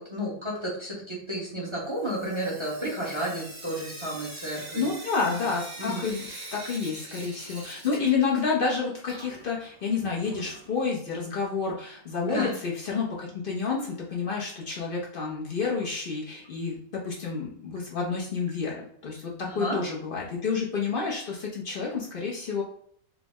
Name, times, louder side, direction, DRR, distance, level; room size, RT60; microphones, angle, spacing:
voice 1, 0.0-4.9 5.8-6.1 12.2-12.5 19.4-19.8, right 1 dB, 25° right, -4 dB, 0.7 m, -32 dB
Sink (filling or washing) / Drip, 1.9-8.7 9.0-10.9 12.1-12.2 12.5-12.6 12.8-12.9 15.8-15.9 16.4-16.5 17.1-17.2 17.8-17.9 18.5-18.6 19.4-19.5, right 2 dB, 70° right, 1.8 m, -44 dB
voice 2, 4.6-22.6, left 5 dB, 80° left, -3 dB, 0.4 m, -29 dB
4.8 x 2.0 x 3.4 m, 0.62 s
omnidirectional pair, 1.9 m